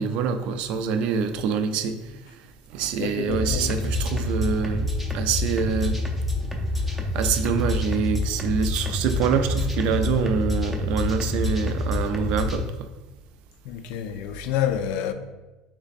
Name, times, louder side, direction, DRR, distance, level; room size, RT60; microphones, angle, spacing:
voice 1, 0.0-2.0 2.7-6.0 7.1-12.7, right 6 dB, 60° right, 0.4 m, -25 dB
voice 2, 3.0-3.9 13.6-15.1, left 10 dB, 65° left, 0.3 m, -28 dB
sound 1, 3.2-12.6, left 1 dB, 5° right, 0.5 m, -27 dB
3.3 x 3.1 x 4.1 m
cardioid pair, 150°, 2 cm